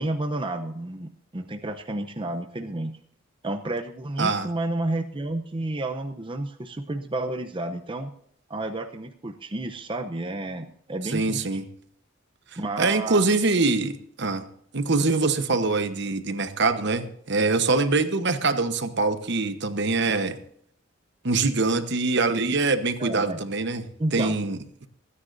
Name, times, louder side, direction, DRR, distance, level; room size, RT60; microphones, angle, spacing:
voice 1, 0.0-2.9 3.4-8.1 8.5-11.6 12.6-13.2 23.0-23.4 24.0-24.4, right 2 dB, 25° right, 5 dB, 0.7 m, -31 dB
voice 2, 4.2-4.5 11.1-11.7 12.8-14.4 14.7-20.4 21.2-23.8 24.1-24.6, right 3 dB, 60° right, 9 dB, 1.1 m, -24 dB
26.5 x 9.8 x 2.6 m, 0.67 s
head